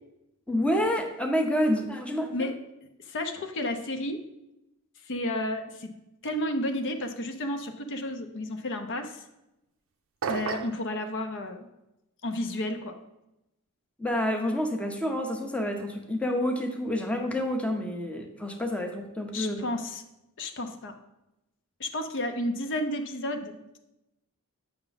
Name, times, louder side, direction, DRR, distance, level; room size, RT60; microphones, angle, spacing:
voice 1, 0.5-2.5 14.0-19.7, left 1 dB, 5° left, 3 dB, 0.7 m, -28 dB
voice 2, 3.0-4.2 5.1-5.9 6.2-9.2 10.3-11.7 12.2-13.0 19.3-20.0 20.4-20.9 21.8-23.8, left 1 dB, 55° left, 6 dB, 0.7 m, -32 dB
sound 1, 10.2-10.8, right 6 dB, 65° right, 0.5 m, -31 dB
7.8 x 5.9 x 4.0 m, 0.90 s
head